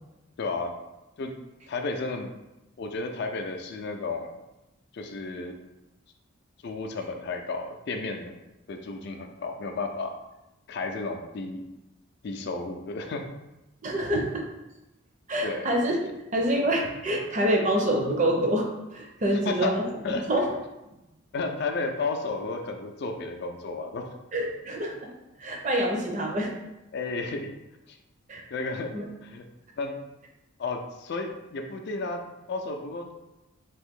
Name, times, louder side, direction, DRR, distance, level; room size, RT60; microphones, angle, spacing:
voice 1, 0.4-0.7 1.2-1.3 1.7-2.3 2.8-4.3 4.9-5.5 6.6-8.3 8.7-10.1 10.7-11.6 12.2-13.2 15.4-15.7 19.5-19.7 20.0-20.2 21.3-24.1 26.9-27.5 27.9-28.0 28.5-28.9 29.2-29.4 29.8-29.9 30.6-32.2 32.5-33.1, left 3 dB, 55° left, 4 dB, 0.4 m, -32 dB
voice 2, 13.8-14.4 15.3-16.0 16.3-19.9 20.3-20.5 24.3-25.1 25.4-26.5 28.3-28.4 28.9-29.1, right 1 dB, 35° right, 0 dB, 0.5 m, -26 dB
2.9 x 2.5 x 3.6 m, 0.97 s
head